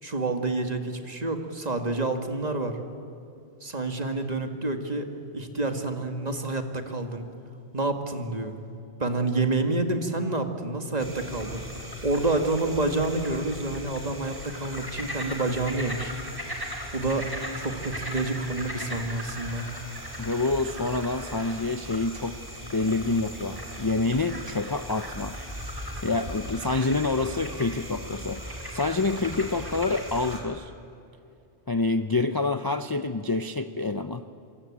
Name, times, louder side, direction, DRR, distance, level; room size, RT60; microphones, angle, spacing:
voice 1, 0.0-2.8 3.6-5.1 5.3-7.3 7.7-8.6 9.0-11.7 12.0-16.1 16.9-17.3 17.6-19.7, right 2 dB, 35° right, 6 dB, 2.0 m, -28 dB
sound 1, 11.0-30.4, equal, 20° right, 4.1 m, -38 dB
voice 2, 20.2-22.4 22.7-25.4 26.0-30.7 31.7-34.2, left 3 dB, 25° left, 10 dB, 0.6 m, -27 dB
26.5 x 23.0 x 8.7 m, 2.6 s
omnidirectional pair, 1.2 m